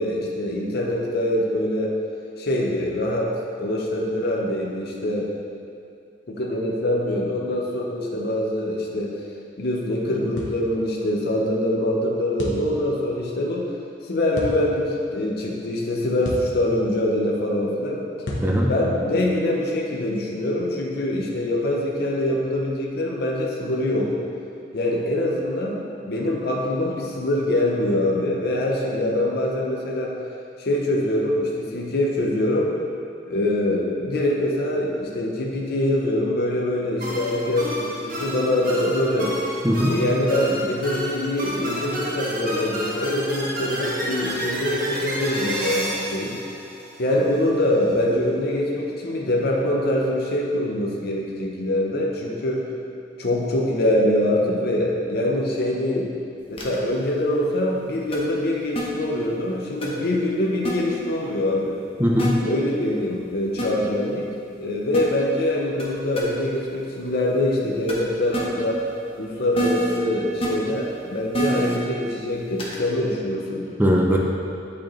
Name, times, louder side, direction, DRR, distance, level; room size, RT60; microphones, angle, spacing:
voice 1, 0.0-1.9 2.4-3.3 3.6-5.3 6.3-9.2 9.6-13.7 14.0-18.0 18.7-24.1 24.7-30.2 30.6-32.7 33.3-39.4 39.9-46.4 47.0-52.7 53.2-56.1 56.5-61.8 62.4-64.3 64.6-68.8 69.2-73.6, left 1 dB, 60° left, -2 dB, 0.7 m, -24 dB
sound 1, 10.4-10.6 12.4-12.7 14.3-14.6 16.2-16.5 18.3-18.5, left 1 dB, 80° left, 1.0 m, -30 dB
sound 2, 37.0-47.4, equal, 50° right, 1.1 m, -30 dB
sound 3, 56.6-56.8 58.1-58.2 58.7-58.8 59.8-59.9 60.6-60.7 62.2-62.3 63.6-63.7 64.9-65.0 65.8-65.9 66.1-66.2 67.9-68.0 68.3-68.4 69.5-70.0 70.4-70.5 71.3-71.8 72.6-72.8, right 1 dB, 30° left, 0.9 m, -25 dB
voice 2, 62.0-62.4 73.8-74.2, equal, 10° right, -2 dB, 0.5 m, -19 dB
8.7 x 4.3 x 3.1 m, 2.5 s
head